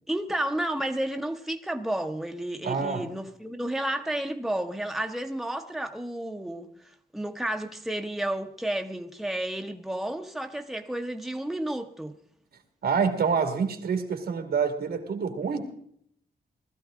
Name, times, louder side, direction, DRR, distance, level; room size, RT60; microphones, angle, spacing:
voice 1, 0.1-6.7 7.1-12.2, right 1 dB, ahead, 0.9 m, -31 dB
voice 2, 2.6-3.0 12.8-15.7, right 6 dB, 90° right, 2.1 m, -27 dB
19.0 x 13.5 x 3.7 m
wide cardioid pair, 140°, 16 cm